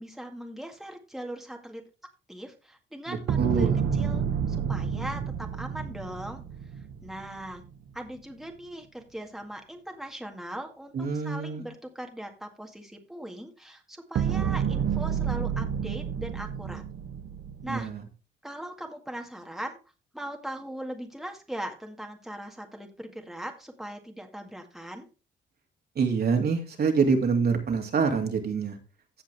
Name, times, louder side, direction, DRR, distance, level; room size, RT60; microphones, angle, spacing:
voice 1, 0.0-1.8 2.3-6.4 7.0-7.6 7.9-16.8 17.6-17.9 18.4-19.8 20.1-25.1, right 1 dB, ahead, 3 dB, 2.0 m, -40 dB
voice 2, 3.1-3.8 10.9-11.7 17.7-18.0 26.0-28.8, right 5 dB, 50° right, 3 dB, 2.8 m, -26 dB
sound 1, 3.3-7.6 14.2-17.9, right 7 dB, 70° right, 1.2 m, -29 dB
16.0 x 5.4 x 3.5 m, 0.32 s
cardioid pair, 90°, 20 cm